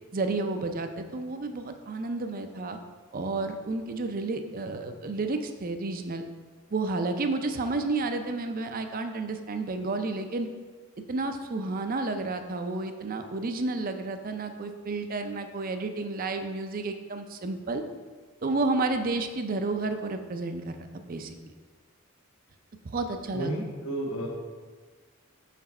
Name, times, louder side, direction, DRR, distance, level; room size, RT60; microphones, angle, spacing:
voice 1, 0.1-2.8 3.1-6.3 6.7-10.5 11.1-17.8 18.4-21.4 22.9-23.5, right 3 dB, 40° right, 7 dB, 0.5 m, -31 dB
voice 2, 23.3-24.3, right 1 dB, 70° left, -1 dB, 1.2 m, -31 dB
5.8 x 5.0 x 4.3 m, 1.4 s
head